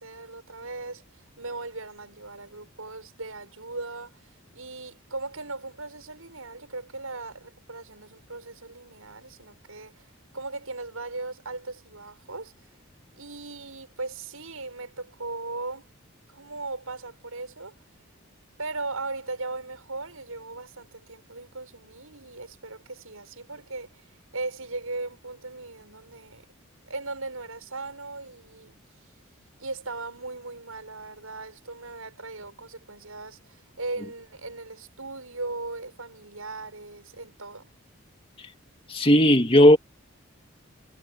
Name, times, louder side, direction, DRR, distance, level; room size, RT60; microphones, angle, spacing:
voice 1, 0.0-4.2 4.5-10.1 10.3-12.5 13.1-15.9 16.3-17.7 18.6-24.0 24.3-26.4 26.8-28.8 29.6-37.7, right 3 dB, 80° right, 6.7 m, -38 dB
voice 2, 38.9-39.8, left 1 dB, 25° left, 2.0 m, -16 dB
head